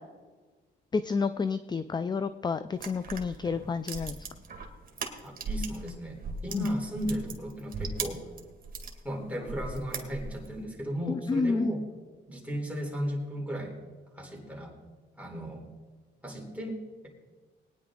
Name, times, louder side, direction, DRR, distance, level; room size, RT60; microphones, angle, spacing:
voice 1, 0.9-4.2 6.5-6.7 11.1-11.7, left 4 dB, 20° left, 12 dB, 0.4 m, -30 dB
sound 1, 2.7-5.9 6.2-9.0 9.4-10.5, right 4 dB, 45° right, 2.0 m, -38 dB
voice 2, 5.2-8.3 9.0-11.9 12.3-13.7 14.2-14.7 15.2-15.7 16.2-17.1, equal, 5° right, -1 dB, 3.7 m, -35 dB
20.0 x 9.8 x 3.8 m, 1.3 s
cardioid pair, 90°, 20 cm